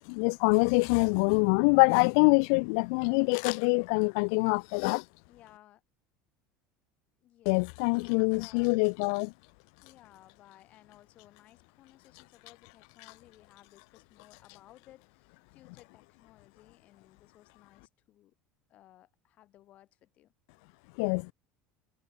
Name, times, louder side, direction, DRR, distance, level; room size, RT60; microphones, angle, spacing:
voice 1, 0.1-5.1 7.5-9.3 21.0-21.3, left 37 dB, 70° left, 0.4 m, -25 dB
voice 2, 5.3-5.8 7.2-8.7 9.8-18.3 18.7-20.3, left 14 dB, 40° left, 6.4 m, -59 dB
cardioid pair, 150°, 3 cm